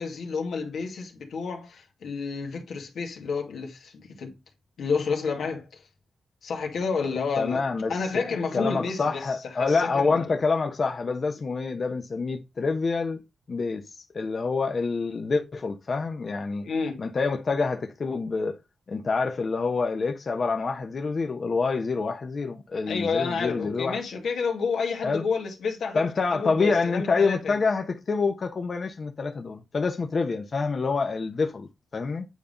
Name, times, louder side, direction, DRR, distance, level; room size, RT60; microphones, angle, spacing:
voice 1, 0.0-4.4 4.8-5.6 6.4-7.6 7.9-9.2 9.6-10.3 16.6-17.0 22.9-26.1 26.3-27.6, left 5 dB, 85° left, 2.0 m, -30 dB
voice 2, 7.4-13.2 13.5-16.7 17.0-18.6 18.9-24.0 25.0-25.2 25.9-32.3, left 4 dB, 55° left, 1.0 m, -27 dB
9.5 x 3.7 x 3.9 m
cardioid pair, 70°, 0 cm